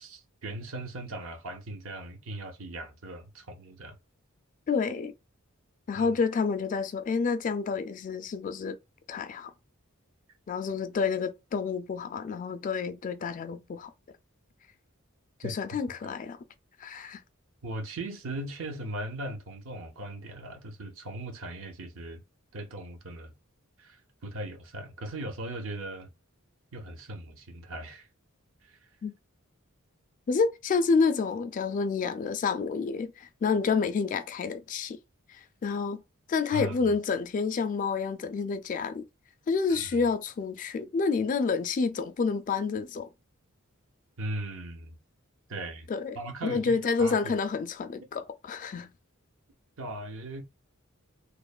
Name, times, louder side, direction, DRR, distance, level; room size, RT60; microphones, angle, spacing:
voice 1, 0.0-4.0 6.0-6.1 15.4-15.6 16.0-16.1 17.6-22.2 22.5-23.3 23.8-24.0 24.2-26.1 26.7-28.1 28.7-28.8 36.5-37.0 39.7-40.0 44.2-45.0 45.5-45.9 46.1-47.3 49.8-50.4, right 1 dB, 65° right, 0.7 m, -38 dB
voice 2, 4.7-5.1 5.9-8.8 9.1-9.5 10.5-13.9 15.4-16.4 16.8-17.2 29.0-29.1 30.3-35.0 35.3-36.0 36.3-39.0 39.5-43.1 45.9-48.9, left 5 dB, 40° left, 0.3 m, -29 dB
3.0 x 2.1 x 2.3 m
head